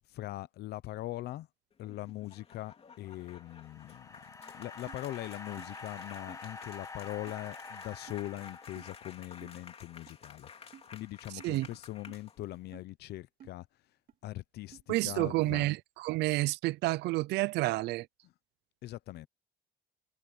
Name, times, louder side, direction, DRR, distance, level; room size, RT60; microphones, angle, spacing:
voice 1, 0.1-1.5 1.8-13.7 14.2-15.7 18.2-18.3 18.8-19.3, left 16 dB, 75° left, 0.9 m, -41 dB
sound 1, 1.7-12.7, left 6 dB, 35° left, 3.1 m, -53 dB
sound 2, 3.1-9.5, left 3 dB, 20° left, 2.2 m, -48 dB
sound 3, 4.9-5.0 5.6-5.7 6.3-6.4 7.3-7.4 8.1-8.2 8.8-8.9 9.4-9.6 10.1-10.2 10.7-10.9 11.4-11.5 12.1-12.2 12.7-12.9 13.4-13.6 14.1-14.2 14.7-14.8, right 9 dB, 60° right, 3.2 m, -53 dB
voice 2, 14.9-18.1, right 19 dB, 85° right, 0.6 m, -30 dB
cardioid pair, 110°, 17 cm